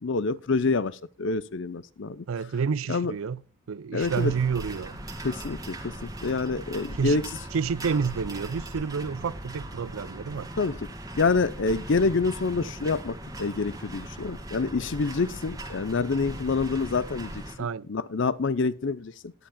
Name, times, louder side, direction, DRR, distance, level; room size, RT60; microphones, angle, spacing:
voice 1, 0.0-2.2 2.9-3.2 3.9-4.3 5.2-7.2 10.6-10.9 11.2-17.4 17.9-19.3, left 4 dB, 60° left, 0.6 m, -27 dB
voice 2, 2.3-3.4 3.7-5.0 7.0-7.2 7.5-10.5 17.6-17.9, right 6 dB, 70° right, 0.4 m, -29 dB
sound 1, 4.0-17.6, right 1 dB, 15° right, 1.8 m, -39 dB
18.5 x 10.5 x 2.3 m
head